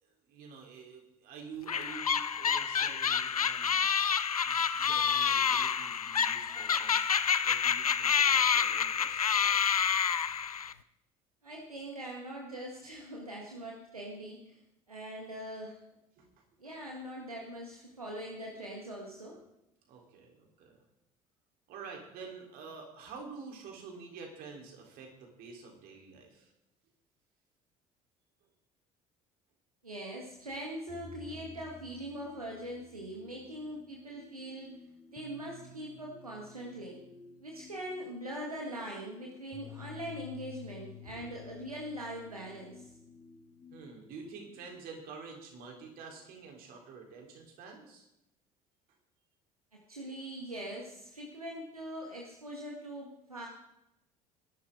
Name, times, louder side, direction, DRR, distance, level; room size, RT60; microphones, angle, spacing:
voice 1, 0.0-3.8 4.4-9.9 16.2-16.4 19.8-20.8 21.7-26.5 41.1-41.3 43.7-48.0, right 5 dB, 55° right, 1 dB, 3.9 m, -49 dB
sound 1, 1.7-10.7, left 7 dB, 85° left, 0.4 m, -28 dB
voice 2, 11.4-14.6 14.9-15.8 16.6-19.4 29.8-34.8 35.1-37.0 37.4-42.9 49.7-53.5, right 1 dB, 85° right, -1 dB, 1.8 m, -42 dB
sound 2, 30.9-46.5, left 6 dB, 35° left, 1.8 m, -53 dB
20.5 x 11.5 x 3.8 m, 0.85 s
figure-of-eight pair, 60°, 18 cm